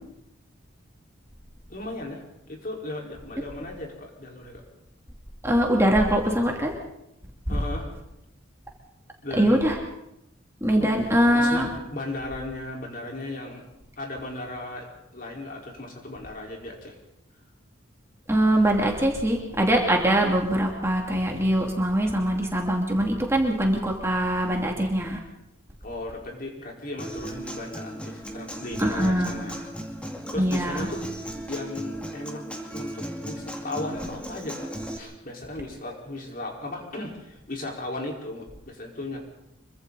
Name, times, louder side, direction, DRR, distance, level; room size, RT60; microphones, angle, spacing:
voice 1, 1.7-2.2 2.5-4.6 7.5-7.9 9.2-9.6 10.7-13.6 14.0-17.0 25.8-29.7 30.3-31.1 31.5-32.5 32.7-34.7 34.9-39.2, left 2 dB, 45° left, -1 dB, 4.7 m, -36 dB
voice 2, 5.4-6.7 7.5-7.6 9.4-9.8 10.6-11.7 18.3-25.2 28.8-29.4 30.4-30.9, right 1 dB, 15° right, 0 dB, 2.7 m, -22 dB
Human voice / Acoustic guitar, 27.0-35.0, right 1 dB, 5° left, 2.4 m, -36 dB
26.0 x 24.0 x 4.2 m, 0.85 s
head